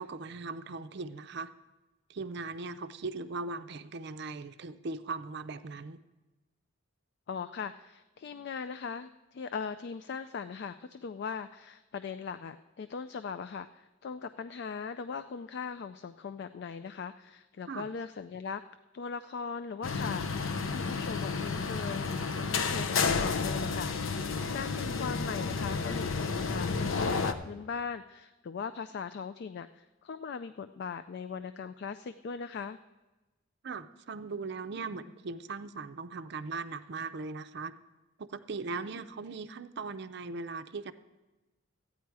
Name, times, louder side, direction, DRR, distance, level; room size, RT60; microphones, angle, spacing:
voice 1, 0.0-1.5 2.1-6.0 17.7-17.9 24.4-24.6 33.6-37.8 38.2-40.9, right 4 dB, 55° right, 11 dB, 0.5 m, -39 dB
voice 2, 7.3-18.6 18.9-22.1 22.4-23.9 24.5-32.8, left 6 dB, 55° left, 10 dB, 0.3 m, -39 dB
sound 1, 19.8-27.3, left 4 dB, 80° left, 0.7 m, -31 dB
14.0 x 9.4 x 4.7 m, 1.1 s
head